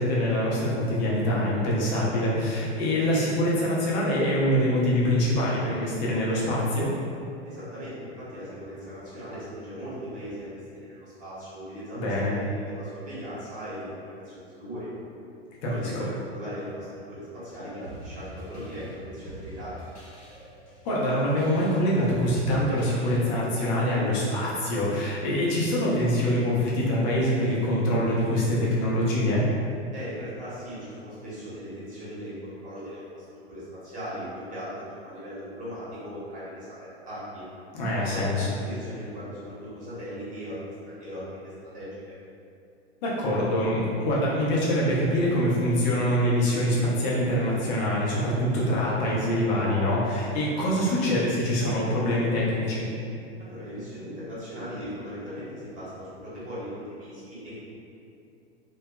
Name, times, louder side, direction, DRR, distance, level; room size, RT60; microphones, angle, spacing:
voice 1, 0.0-6.9 12.0-12.3 15.6-16.0 20.8-29.4 37.8-38.5 43.0-52.9, equal, 40° left, -6 dB, 0.7 m, -24 dB
voice 2, 7.4-14.9 15.6-19.7 29.9-36.8 37.0-37.4 38.1-42.2 53.4-57.7, equal, 25° right, -11 dB, 1.1 m, -38 dB
sound 1, 17.8-23.5, equal, 90° left, 0.7 m, -44 dB
2.5 x 2.3 x 2.2 m, 2.5 s
figure-of-eight pair, 90°, 33 cm